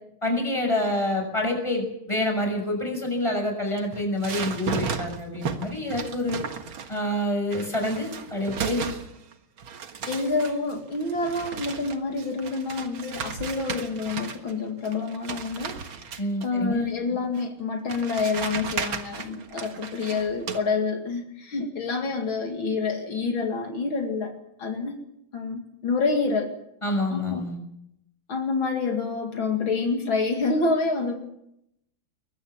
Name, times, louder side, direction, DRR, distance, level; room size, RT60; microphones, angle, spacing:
voice 1, 0.2-6.4 6.9-8.9 16.2-16.9 26.8-27.6, left 1 dB, 15° left, 3 dB, 6.4 m, -27 dB
sound 1, 3.7-7.1 7.5-9.3 9.6-14.5 14.8-16.5 17.3-17.4 17.9-20.6, right 6 dB, 85° right, 2.4 m, -35 dB
voice 2, 10.1-15.8 16.4-24.3 24.6-25.0 25.3-26.5 26.9-27.4 28.3-31.1, left 4 dB, 70° left, 3 dB, 3.1 m, -27 dB
22.5 x 21.5 x 7.2 m, 0.79 s
omnidirectional pair, 2.2 m